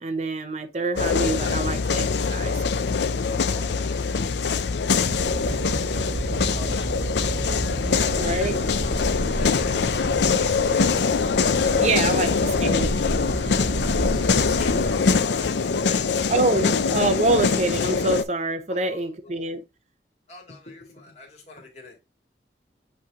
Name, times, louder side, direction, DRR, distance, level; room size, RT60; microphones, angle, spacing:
voice 1, 0.0-2.7 8.1-8.6 11.8-12.9 16.3-19.6, right 2 dB, 40° right, 0.7 m, -26 dB
sound 1, 1.0-18.2, left 5 dB, 80° left, 0.5 m, -23 dB
voice 2, 3.5-7.3 7.9-8.5 8.8-9.0 9.3-10.9 12.0-12.2 13.7-15.6 15.8-16.4 18.7-19.4 20.3-22.0, left 3 dB, 40° left, 2.3 m, -45 dB
sound 2, 5.0-15.2, right 1 dB, 75° right, 1.4 m, -32 dB
sound 3, 8.0-14.9, equal, 60° left, 2.3 m, -33 dB
8.2 x 3.2 x 3.5 m
head